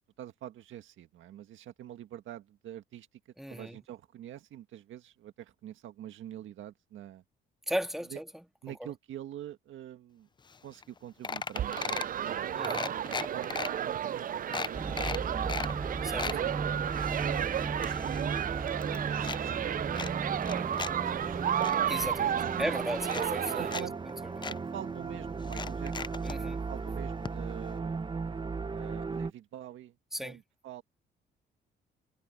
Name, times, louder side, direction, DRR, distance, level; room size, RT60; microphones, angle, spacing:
voice 1, 0.2-3.1 3.5-7.2 8.1-8.2 8.6-10.3 10.6-11.8 12.1-15.4 16.3-21.8 22.1-22.9 23.6-24.0 24.5-26.2 26.5-28.0 28.7-29.9 30.2-30.8, right 12 dB, 80° right, 1.7 m, -45 dB
voice 2, 3.4-3.8 7.7-8.9 12.5-13.0 16.0-16.3 21.9-23.9 24.2-24.5 26.2-26.6 30.1-30.4, equal, ahead, 2.3 m, -36 dB
sound 1, 10.5-10.6 10.8-11.0 11.2-12.2 12.6-13.7 14.1-14.2 14.5-15.7 16.0-16.4 16.9-18.4 18.7-19.4 19.9-20.9 21.3-21.8 22.6-22.7 23.0-23.8 24.1-24.2 24.4-24.6 25.4-26.4 27.2-27.3 27.6-27.7, left 5 dB, 25° left, 0.5 m, -37 dB
sound 2, 11.5-23.8, right 9 dB, 45° right, 0.5 m, -33 dB
sound 3, 14.7-29.3, right 4 dB, 25° right, 1.0 m, -36 dB
cardioid pair, 90°, 20 cm